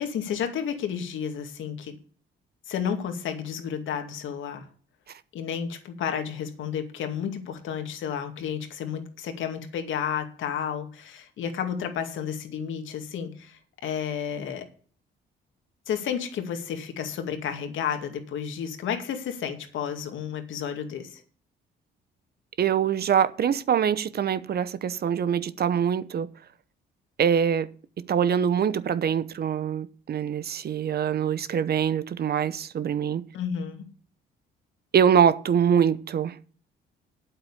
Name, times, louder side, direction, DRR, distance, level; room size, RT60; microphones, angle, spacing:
voice 1, 0.0-1.9 2.7-4.6 5.3-14.7 15.9-21.2 33.3-33.8, left 8 dB, 80° left, 2.3 m, -31 dB
voice 2, 22.6-26.3 27.2-27.7 28.0-33.3 34.9-36.5, right 8 dB, 55° right, 0.9 m, -24 dB
9.1 x 7.9 x 7.3 m
cardioid pair, 90°, 20 cm